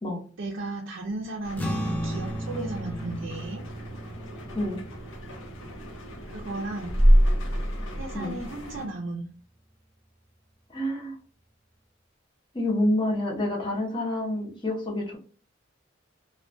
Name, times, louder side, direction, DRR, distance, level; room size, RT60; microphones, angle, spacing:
voice 1, 0.4-3.6 6.3-7.0 8.0-9.3, right 2 dB, 70° right, -1 dB, 0.5 m, -35 dB
sound 1, 1.4-8.9, equal, 90° left, 0.7 m, -27 dB
sound 2, 1.5-8.2, equal, 10° left, 0.3 m, -36 dB
voice 2, 10.7-11.1 12.5-15.2, left 1 dB, 25° left, -2 dB, 0.7 m, -28 dB
2.3 x 2.2 x 2.5 m, 0.40 s
head